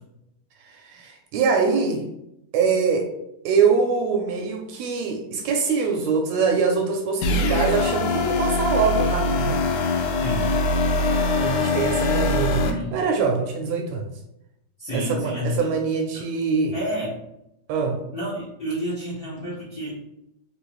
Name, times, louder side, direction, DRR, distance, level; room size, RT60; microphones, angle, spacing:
voice 1, 0.6-2.0 2.5-3.1 3.4-9.6 11.4-12.7 12.9-14.1 14.9-16.7 17.7-18.0, right 5 dB, 80° right, 3 dB, 1.7 m, -23 dB
sound 1, 7.2-12.7, left 2 dB, 80° left, 1.5 m, -22 dB
voice 2, 10.2-10.5 12.6-13.0 14.8-15.7 16.1-16.2 16.7-17.1 17.9-20.0, equal, 55° left, -8 dB, 1.1 m, -30 dB
4.2 x 3.3 x 3.0 m, 0.84 s
omnidirectional pair, 3.4 m